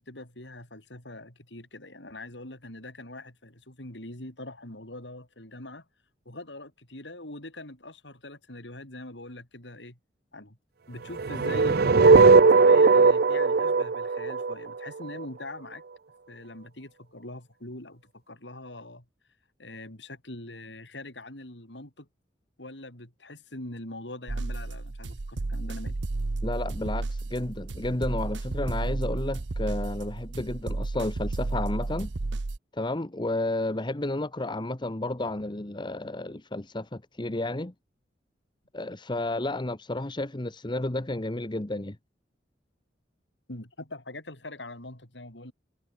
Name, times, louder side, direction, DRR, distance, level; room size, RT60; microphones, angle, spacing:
voice 1, 0.0-5.9 6.2-10.0 10.3-10.6 10.9-15.8 16.3-19.0 19.6-22.1 22.6-26.0 43.5-45.5, left 2 dB, 80° left, 6.5 m, -43 dB
sound 1, 11.2-15.2, right 4 dB, 60° right, 0.6 m, -18 dB
sound 2, 24.3-32.6, right 2 dB, 85° right, 0.9 m, -32 dB
voice 2, 26.4-32.1 32.7-37.7 38.7-42.0, left 2 dB, 25° left, 1.2 m, -32 dB
head